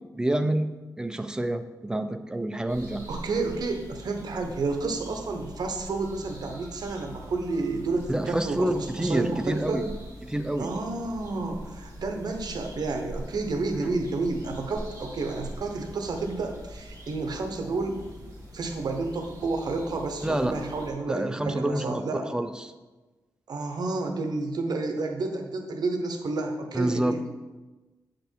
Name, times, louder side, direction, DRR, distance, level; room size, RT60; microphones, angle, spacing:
voice 1, 0.1-0.7 1.0-3.1 8.1-9.9 10.2-10.7 13.7-13.9 20.2-20.6 21.1-22.7 26.7-27.2, right 1 dB, 10° right, 9 dB, 0.4 m, -28 dB
sound 1, 2.7-20.9, equal, 45° right, 2.4 m, -43 dB
voice 2, 3.1-9.9 10.6-18.0 18.5-22.3 23.5-27.2, right 3 dB, 70° right, 5 dB, 0.9 m, -30 dB
7.9 x 5.2 x 4.5 m, 1.2 s
wide cardioid pair, 145°, 7 cm